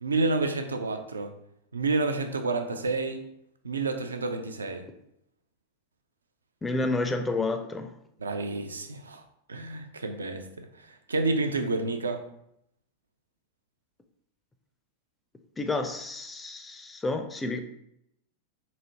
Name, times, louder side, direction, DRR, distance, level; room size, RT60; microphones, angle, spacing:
voice 1, 0.0-1.3 1.7-3.2 3.6-4.9 8.2-9.2 9.5-10.7 11.1-12.3, right 3 dB, 75° right, 7 dB, 0.4 m, -29 dB
voice 2, 6.6-7.9 15.6-17.6, left 2 dB, 10° left, 6 dB, 0.4 m, -30 dB
4.0 x 2.7 x 2.8 m, 0.77 s
figure-of-eight pair, 90°, 0 cm